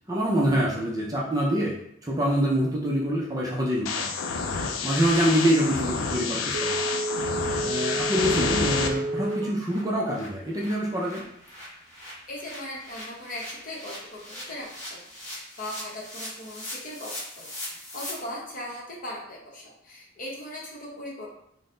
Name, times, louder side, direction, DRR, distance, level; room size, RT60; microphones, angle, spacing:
voice 1, 0.1-1.8 2.0-4.1 4.8-6.8 7.6-11.2, equal, 15° right, -4 dB, 0.5 m, -25 dB
sound 1, 3.9-8.9, left 5 dB, 75° left, 0.4 m, -29 dB
sound 2, 6.0-6.1 6.5-6.6 6.9-7.0 7.3-7.5 7.8-18.1, left 1 dB, 15° left, 1.3 m, -42 dB
Telephone, 6.5-9.6 10.0-10.1, right 2 dB, 80° right, 0.4 m, -30 dB
voice 2, 12.3-14.2 14.5-21.3, left 1 dB, 40° left, -3 dB, 0.9 m, -39 dB
3.9 x 2.0 x 3.7 m, 0.73 s
head